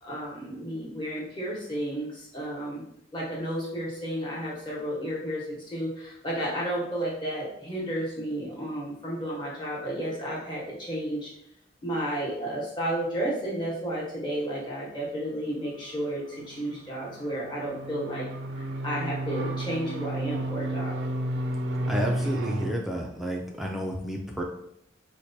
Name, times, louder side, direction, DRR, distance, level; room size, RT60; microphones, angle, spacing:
voice 1, 0.0-2.8 3.1-11.3 11.8-18.2 18.5-21.0, right 1 dB, 25° left, -5 dB, 1.0 m, -32 dB
sound 1, 15.7-22.7, right 1 dB, 70° right, 0.4 m, -32 dB
voice 2, 21.9-24.4, equal, ahead, 0 dB, 0.3 m, -31 dB
4.4 x 2.2 x 2.7 m, 0.74 s
head